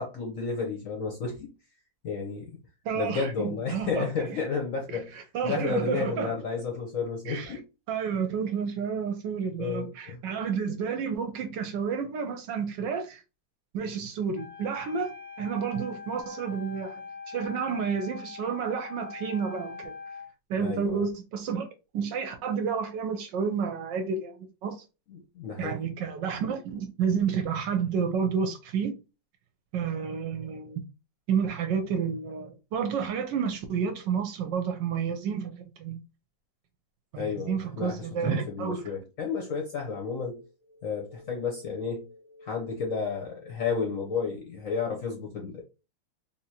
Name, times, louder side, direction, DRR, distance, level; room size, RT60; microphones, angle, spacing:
voice 1, 0.0-1.5 2.0-2.5 2.9-5.1 5.4-7.6 9.6-10.2 20.6-21.0 25.1-25.8 37.2-40.5 40.8-45.6, left 5 dB, 60° left, 0.9 m, -32 dB
voice 2, 2.8-4.4 4.9-6.3 7.3-7.6 7.9-13.2 13.7-17.0 17.3-19.9 20.5-21.7 21.9-24.8 25.6-28.9 29.7-30.8 31.3-36.0 37.1-38.9, right 6 dB, 70° right, 1.2 m, -30 dB
Wind instrument woodwind instrument, 14.3-20.3, left 5 dB, 30° left, 0.7 m, -42 dB
3.5 x 2.8 x 2.8 m
omnidirectional pair, 2.2 m